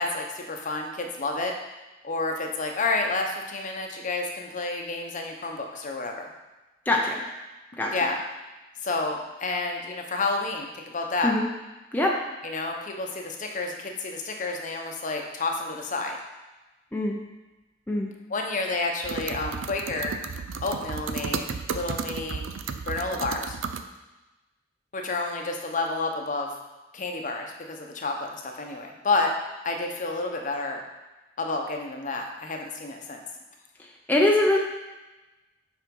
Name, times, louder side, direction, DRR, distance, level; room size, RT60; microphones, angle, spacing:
voice 1, 0.0-1.5 2.0-6.3 7.8-8.2 8.8-11.3 12.4-16.2 18.3-20.1 20.6-22.4 22.9-23.6 24.9-26.5 26.9-29.3 29.6-30.8 31.4-33.2, left 3 dB, 40° left, 2 dB, 0.9 m, -30 dB
voice 2, 6.9-7.2 7.8-7.9 11.2-11.5 11.9-12.2 16.9-17.2 17.9-18.1 34.1-34.6, left 1 dB, 10° left, -2 dB, 0.6 m, -22 dB
sound 1, 19.0-23.8, right 5 dB, 85° right, 0.5 m, -33 dB
7.6 x 4.3 x 5.3 m, 1.1 s
head